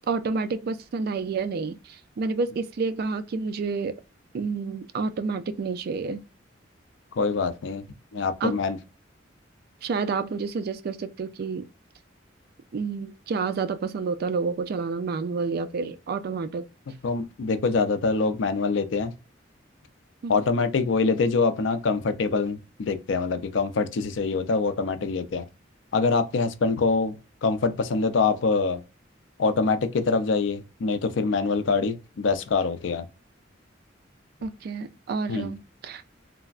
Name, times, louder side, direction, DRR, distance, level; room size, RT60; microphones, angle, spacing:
voice 1, 0.1-3.9 4.3-6.2 8.4-8.5 9.8-11.7 12.7-16.7 20.2-20.4 34.4-35.6 35.8-36.0, right 4 dB, 55° right, 0.3 m, -29 dB
voice 2, 7.2-7.8 8.1-8.8 17.0-19.1 20.3-25.4 25.9-27.1 27.4-28.8 29.4-33.0 35.3-35.5, left 4 dB, 75° left, 0.4 m, -24 dB
3.3 x 2.0 x 2.3 m
head